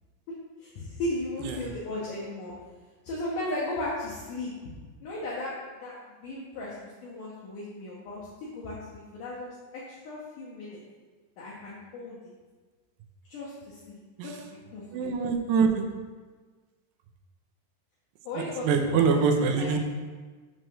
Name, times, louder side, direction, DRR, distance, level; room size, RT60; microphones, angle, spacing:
voice 1, 0.6-2.5 3.0-4.5 5.0-5.9 6.2-10.8 11.4-12.3 13.3-15.1 18.2-19.8, left 1 dB, 65° left, -6 dB, 2.2 m, -36 dB
voice 2, 14.9-15.9 18.7-19.8, right 5 dB, 80° right, 4 dB, 2.6 m, -24 dB
7.9 x 4.6 x 6.4 m, 1.4 s
omnidirectional pair, 5.1 m